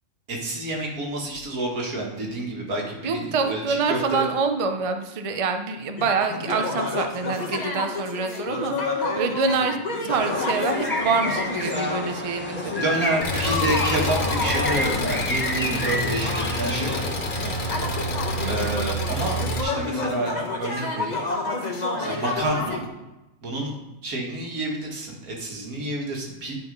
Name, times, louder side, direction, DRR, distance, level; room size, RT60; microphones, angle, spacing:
voice 1, 0.3-4.3 12.6-17.9 18.4-21.2 22.0-22.8 23.4-23.7 24.0-26.5, right 2 dB, 85° right, -1 dB, 2.2 m, -29 dB
voice 2, 3.0-9.8 10.0-13.1 18.4-18.7, right 4 dB, 35° right, 6 dB, 0.5 m, -26 dB
sound 1, 6.0-12.2 12.5-22.8, left 3 dB, 30° left, 1.2 m, -30 dB
sound 2, 10.1-18.8, left 1 dB, 10° left, 0.7 m, -31 dB
Engine, 13.2-19.6, equal, 85° left, 1.8 m, -28 dB
11.0 x 4.8 x 5.3 m, 0.98 s
omnidirectional pair, 1.5 m